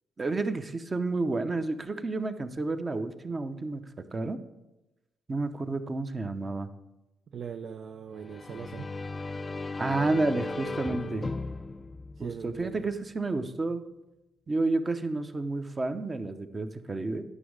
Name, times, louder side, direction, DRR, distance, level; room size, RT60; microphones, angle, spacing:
voice 1, 0.2-4.4 5.3-6.7 9.8-11.2 12.2-13.8 14.5-17.2, right 3 dB, 30° right, 9 dB, 0.7 m, -30 dB
voice 2, 7.3-8.9 11.1-11.4 12.2-12.9, right 7 dB, 60° right, 7 dB, 0.4 m, -41 dB
sound 1, 8.2-12.9, left 3 dB, 25° left, 0.4 m, -36 dB
10.0 x 6.2 x 4.8 m, 0.99 s
cardioid pair, 90°, 0 cm